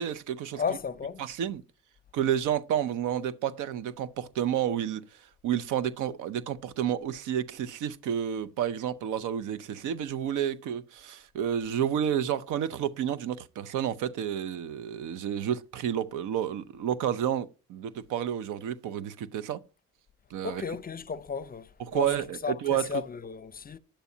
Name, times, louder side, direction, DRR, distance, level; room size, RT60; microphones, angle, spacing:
voice 1, 0.0-0.8 1.2-1.6 2.1-5.0 5.4-19.6 20.3-20.6 21.8-22.9, right 10 dB, 85° right, 0.7 m, -30 dB
voice 2, 0.6-1.2 20.4-22.1 22.4-23.8, left 6 dB, 30° left, 0.6 m, -34 dB
10.0 x 8.1 x 2.7 m
cardioid pair, 90°, 30 cm